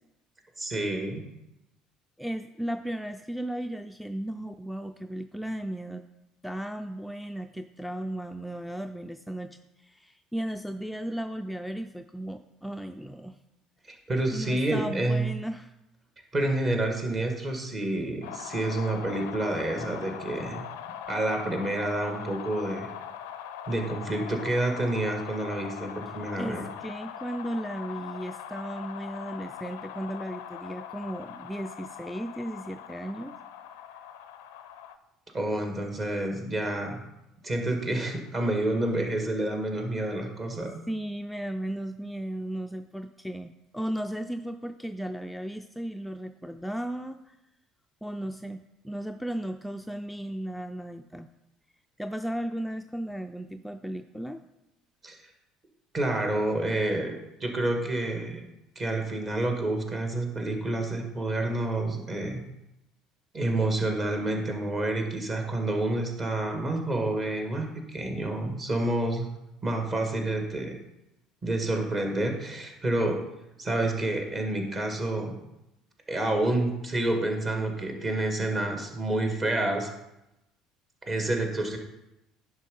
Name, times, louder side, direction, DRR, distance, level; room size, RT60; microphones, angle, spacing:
voice 1, 0.6-1.2 13.9-15.3 16.3-20.6 21.1-22.9 23.7-26.7 35.3-37.0 37.4-40.8 55.0-55.3 55.9-58.4 58.8-62.4 63.3-69.3 69.6-70.8 71.4-73.2 73.6-75.4 76.1-79.9 81.1-81.8, right 2 dB, 35° right, 3 dB, 1.8 m, -28 dB
voice 2, 2.2-6.0 6.4-13.4 14.3-15.7 26.4-33.3 40.9-47.4 48.0-48.6 48.8-51.3 52.0-54.4, right 1 dB, ahead, 6 dB, 0.4 m, -35 dB
sound 1, 18.2-35.0, left 9 dB, 70° left, 0.5 m, -41 dB
10.5 x 3.8 x 5.5 m, 0.91 s
figure-of-eight pair, 60°, 0 cm